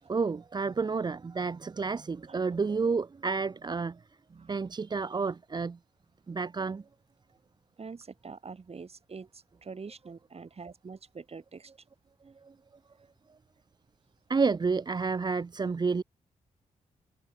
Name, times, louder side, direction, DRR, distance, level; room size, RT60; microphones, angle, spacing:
voice 1, 0.1-4.0 4.5-5.8 6.3-6.8 12.2-12.5 14.3-16.0, right 4 dB, 30° right, 0.5 m, -30 dB
voice 2, 1.4-2.4 4.3-4.7 7.8-11.7, right 5 dB, 45° right, 4.3 m, -46 dB
cardioid pair, 60°, 14 cm